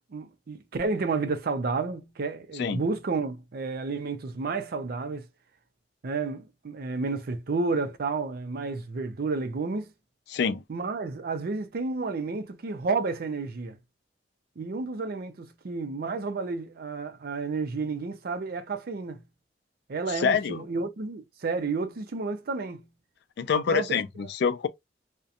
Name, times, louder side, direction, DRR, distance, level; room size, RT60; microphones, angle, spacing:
voice 1, 0.1-5.3 6.0-9.9 10.7-13.8 14.6-19.3 19.9-22.9 23.5-23.9, right 4 dB, 55° right, 0.5 m, -31 dB
voice 2, 10.3-10.6 20.1-20.6 23.4-24.7, left 6 dB, 65° left, 0.4 m, -26 dB
2.7 x 2.1 x 2.4 m
head